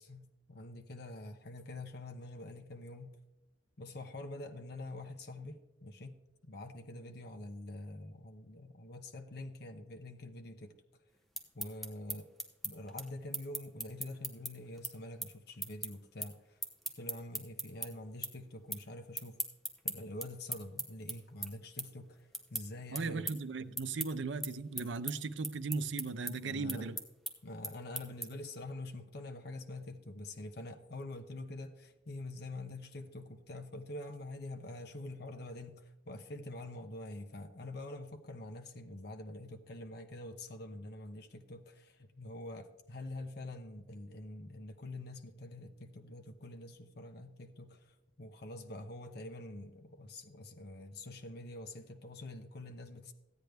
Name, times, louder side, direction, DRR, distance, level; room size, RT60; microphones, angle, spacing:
voice 1, 0.0-3.2 3.8-6.2 6.5-10.7 11.5-12.3 12.6-16.6 17.0-19.4 19.8-23.3 26.2-26.9 27.4-53.1, left 1 dB, 60° left, 6 dB, 0.8 m, -46 dB
sound 1, 11.1-17.9 18.2-18.8 19.1-28.5, right 1 dB, ahead, 0.9 m, -40 dB
voice 2, 22.9-27.0, right 4 dB, 75° right, 11 dB, 0.6 m, -37 dB
15.0 x 9.2 x 3.4 m, 0.98 s
head